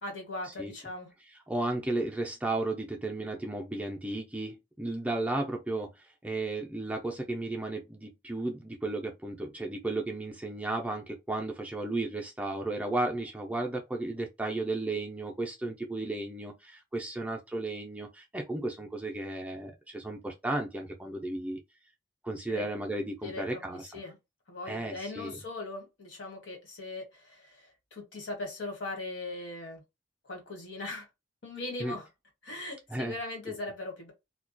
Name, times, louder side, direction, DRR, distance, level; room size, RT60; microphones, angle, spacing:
voice 1, 0.0-1.1 22.5-22.7 23.2-24.1 24.5-29.8 30.3-31.1 31.4-32.1 32.4-34.1, left 2 dB, 70° left, 1.2 m, -39 dB
voice 2, 1.3-5.9 6.2-21.6 22.2-24.0 24.7-25.4 31.8-31.9 32.9-33.1 33.5-33.6, right 2 dB, 10° right, 0.4 m, -34 dB
2.2 x 2.2 x 2.5 m
head